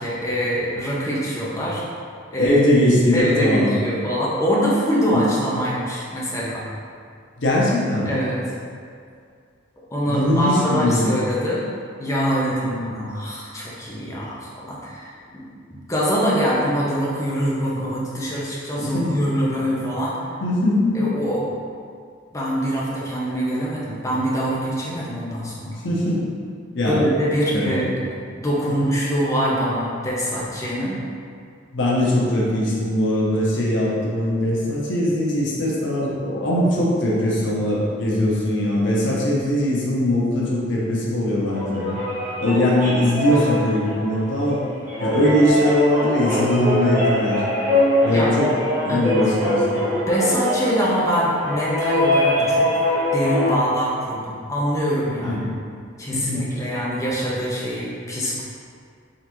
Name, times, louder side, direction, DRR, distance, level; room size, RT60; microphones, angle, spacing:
voice 1, 0.0-1.8 2.3-2.6 3.1-6.6 8.1-8.4 9.9-11.6 12.0-20.2 20.9-21.4 22.3-25.8 26.9-27.9 28.3-31.0 43.3-43.4 48.1-48.3 48.9-49.1 50.1-55.4 56.0-58.4, equal, 15° left, -7 dB, 0.7 m, -24 dB
voice 2, 2.4-3.8 5.1-5.3 5.5-5.8 7.4-8.2 10.0-11.2 18.8-19.1 20.4-21.0 25.8-26.2 26.7-27.1 27.5-27.9 28.7-28.9 31.7-42.0 42.4-44.6 45.0-47.4 48.0-48.5 48.8-49.8 55.2-55.4 56.1-56.5, left 1 dB, 70° left, -5 dB, 0.8 m, -21 dB
sound 1, 41.5-53.6, left 1 dB, 45° right, 1.2 m, -23 dB
3.8 x 3.3 x 3.0 m, 2.3 s
head